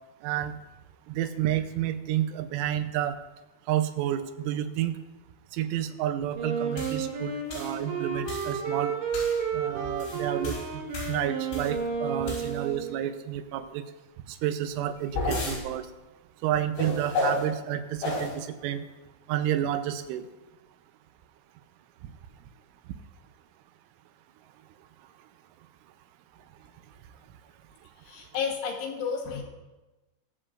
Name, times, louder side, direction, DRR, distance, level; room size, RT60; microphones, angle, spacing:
voice 1, 0.2-0.6 1.1-3.2 3.7-5.0 5.5-8.9 9.5-13.8 14.3-15.9 16.4-18.9 19.3-20.3, right 11 dB, 85° right, 9 dB, 3.2 m, -30 dB
Wind instrument woodwind instrument, 6.3-13.0, right 5 dB, 65° right, 3.1 m, -32 dB
sound 1, 6.8-7.0 7.5-7.8 8.3-8.6 9.1-9.4 9.8-11.8 12.2-12.8 14.7-15.6 16.8-17.4 18.0-18.3, left 2 dB, 90° left, 7.0 m, -32 dB
voice 2, 28.0-29.4, left 6 dB, 70° left, -1 dB, 3.2 m, -31 dB
22.5 x 7.6 x 2.5 m, 1.1 s
omnidirectional pair, 5.5 m